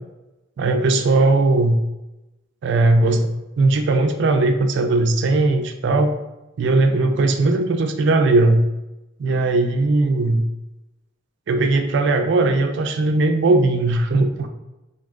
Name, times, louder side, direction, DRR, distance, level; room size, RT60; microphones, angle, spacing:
voice 1, 0.6-1.8 2.6-6.1 6.6-8.6 9.2-10.4 11.5-14.5, right 2 dB, 60° right, 6 dB, 0.4 m, -18 dB
3.4 x 2.6 x 2.4 m, 0.98 s
head